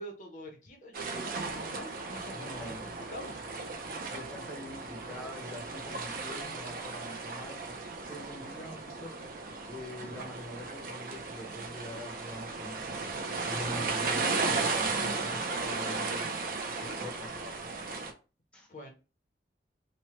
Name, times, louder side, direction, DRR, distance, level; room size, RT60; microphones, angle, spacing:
voice 1, 0.0-3.4 18.7-18.9, equal, 45° left, 1 dB, 0.7 m, -45 dB
sound 1, 0.9-18.1, right 3 dB, 50° right, 0.5 m, -35 dB
voice 2, 2.3-2.9 4.0-7.8 8.0-9.1 9.6-12.8 13.4-17.4 18.5-18.7, left 1 dB, 5° left, -1 dB, 0.6 m, -44 dB
3.2 x 2.1 x 2.9 m, 0.32 s
head